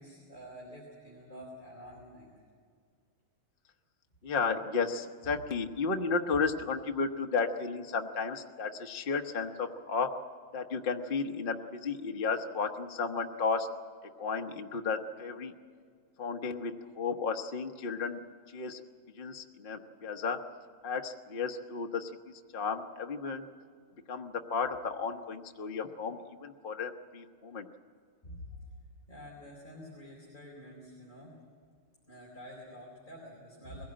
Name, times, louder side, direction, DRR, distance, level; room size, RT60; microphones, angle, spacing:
voice 1, 0.0-2.3 28.2-28.5 29.1-31.3 32.1-33.9, equal, 20° left, -4 dB, 4.2 m, -48 dB
voice 2, 4.2-10.1 10.5-13.7 14.2-15.5 16.2-18.2 18.5-18.8 19.1-20.4 20.8-23.5 24.1-27.7, left 5 dB, 40° left, 4 dB, 0.8 m, -33 dB
22.0 x 16.5 x 8.8 m, 2.1 s
omnidirectional pair, 2.4 m